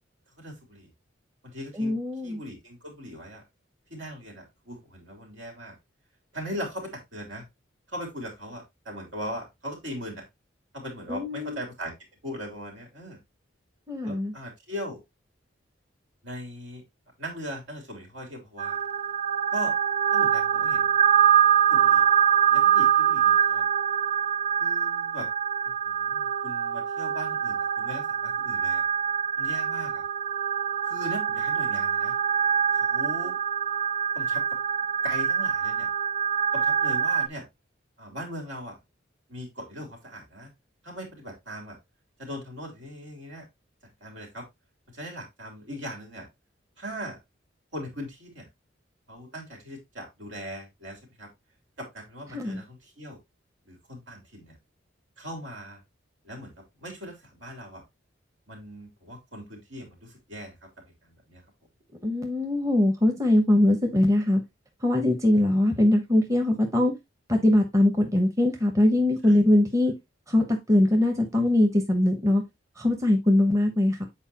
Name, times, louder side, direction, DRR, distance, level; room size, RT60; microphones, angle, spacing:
voice 1, 0.4-0.9 1.4-2.0 2.2-3.4 3.9-5.7 6.3-7.4 7.9-10.3 10.7-11.9 12.2-13.2 14.0-15.0 16.2-16.8 17.2-18.8 19.5-19.7 20.1-20.9 21.7-22.1 22.5-23.7 24.6-25.3 25.9-28.8 29.4-30.0 30.8-32.1 32.7-33.4 34.1-34.4 35.0-35.9 36.5-37.4 38.0-38.8 39.3-40.5 40.8-41.8 42.2-43.5 44.0-44.4 44.9-46.3 46.8-47.2 47.7-48.5 49.1-51.3 51.8-53.2 53.6-54.6 55.2-55.8 56.2-56.5 56.8-57.8 58.5-60.5 61.0-61.4 65.3-65.4 69.2-69.4, equal, 80° right, 3.2 m, -39 dB
voice 2, 1.8-2.4 11.1-11.6 13.9-14.3 52.3-52.6 62.0-64.4 64.8-66.9 67.3-69.9 70.3-72.4 72.8-74.1, left 1 dB, 15° right, 0.9 m, -22 dB
sound 1, 18.6-37.3, right 8 dB, 45° right, 0.4 m, -24 dB
8.1 x 4.5 x 2.8 m
head